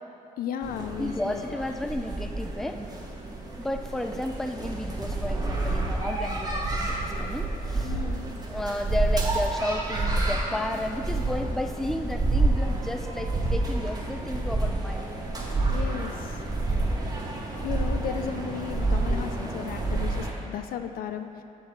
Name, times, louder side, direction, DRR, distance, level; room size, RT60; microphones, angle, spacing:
voice 1, 0.4-1.6 7.8-8.3 15.7-16.4 17.6-21.3, left 8 dB, 80° left, 7 dB, 0.4 m, -35 dB
sound 1, 0.6-20.3, right 2 dB, 25° right, 1.0 m, -29 dB
voice 2, 1.0-2.8 3.6-8.0 8.5-15.1, left 1 dB, ahead, 6 dB, 0.4 m, -32 dB
6.6 x 4.5 x 4.6 m, 2.6 s
cardioid pair, 80°, 15 cm